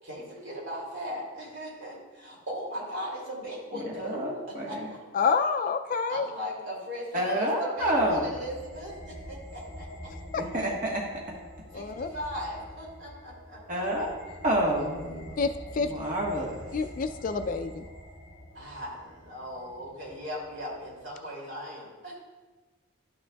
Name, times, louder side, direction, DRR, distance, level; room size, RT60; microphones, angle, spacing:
voice 1, 0.0-5.0 6.1-9.9 11.7-13.6 18.5-22.1, equal, 60° right, -4 dB, 2.6 m, -38 dB
voice 2, 3.7-4.9 7.1-8.3 10.4-11.1 13.7-15.3 15.8-16.6, right 1 dB, 40° right, -3 dB, 1.3 m, -29 dB
voice 3, 5.1-6.3 10.3-10.4 11.7-12.1 15.4-15.9 16.7-17.9, left 5 dB, 40° left, 8 dB, 0.3 m, -28 dB
sound 1, 7.8-21.1, equal, 10° right, 2.6 m, -46 dB
12.0 x 6.4 x 2.3 m, 1.3 s
head